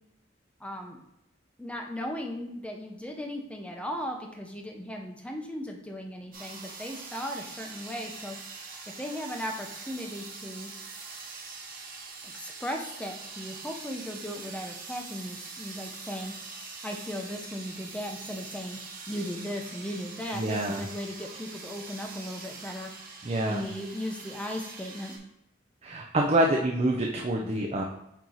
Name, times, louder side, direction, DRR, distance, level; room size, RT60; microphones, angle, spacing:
voice 1, 0.6-1.0 1.6-8.4 9.0-10.7 12.2-16.3 16.8-18.8 19.1-22.9 23.5-25.2, equal, 5° left, 2 dB, 0.8 m, -37 dB
sound 1, 6.3-25.2, right 4 dB, 50° right, 1.3 m, -43 dB
voice 2, 20.3-20.8 23.2-23.6 25.8-27.8, right 1 dB, 35° right, 0 dB, 0.6 m, -26 dB
8.8 x 3.1 x 4.0 m, 0.83 s
head